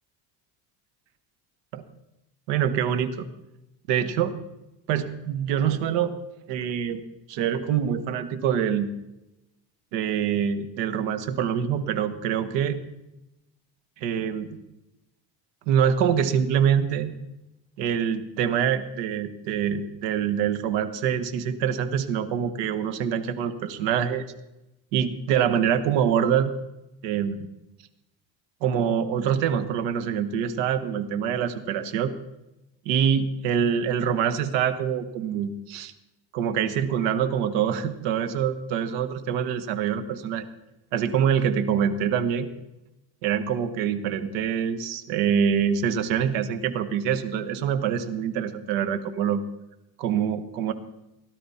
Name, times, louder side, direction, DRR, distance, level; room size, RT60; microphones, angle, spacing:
voice 1, 2.5-3.2 3.9-4.3 4.9-6.1 6.5-7.0 7.3-8.9 9.9-12.8 14.0-14.6 15.7-17.1 17.8-24.2 24.9-26.5 27.0-27.5 28.6-32.1 32.8-35.9 36.3-40.4 40.9-42.5 43.2-49.4 50.0-50.7, right 8 dB, 90° right, 10 dB, 1.4 m, -25 dB
17.0 x 12.0 x 4.3 m, 0.95 s
cardioid pair, 120°, 42 cm